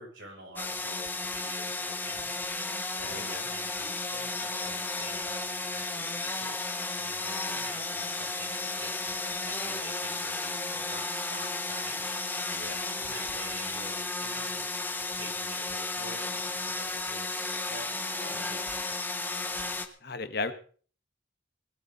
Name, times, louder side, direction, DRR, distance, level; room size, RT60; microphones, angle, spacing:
voice 1, 0.0-2.3 3.0-9.2 9.5-12.2 13.0-14.7 15.1-18.8, right 2 dB, 80° right, -1 dB, 7.6 m, -47 dB
sound 1, 0.6-19.9, left 3 dB, 10° left, 1.2 m, -34 dB
voice 2, 2.7-3.4 12.5-12.8 20.0-20.5, left 3 dB, 55° left, 9 dB, 1.4 m, -36 dB
19.5 x 13.0 x 4.1 m, 0.42 s
head